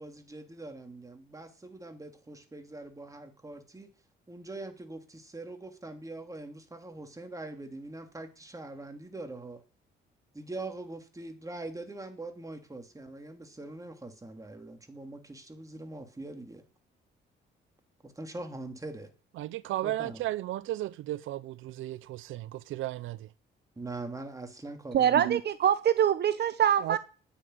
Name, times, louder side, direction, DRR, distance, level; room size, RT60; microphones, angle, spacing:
voice 1, 0.0-3.9 4.3-9.6 10.3-16.6 18.0-19.1 19.8-20.2 23.8-25.3, right 2 dB, 15° right, 3.0 m, -42 dB
voice 2, 19.4-23.2 25.2-25.4 26.8-27.0, right 15 dB, 80° right, 0.6 m, -34 dB
voice 3, 24.9-27.0, right 9 dB, 55° right, 0.9 m, -24 dB
10.0 x 9.3 x 9.5 m
cardioid pair, 90°, 20 cm